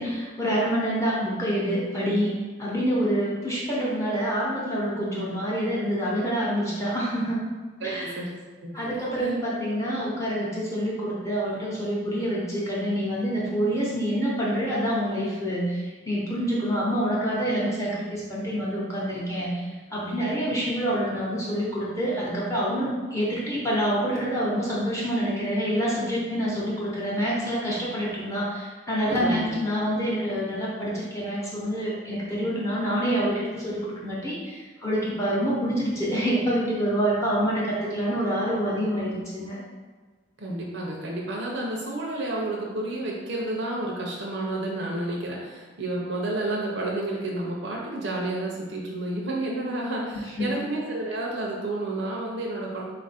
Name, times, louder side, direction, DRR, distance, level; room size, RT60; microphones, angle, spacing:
voice 1, 0.0-7.4 7.8-8.2 8.7-39.6 50.4-50.5, equal, 15° left, -6 dB, 0.8 m, -27 dB
voice 2, 7.8-8.3 8.6-9.3 29.2-29.6 40.4-52.8, right 2 dB, 65° right, -3 dB, 0.7 m, -30 dB
3.9 x 2.5 x 4.1 m, 1.4 s
head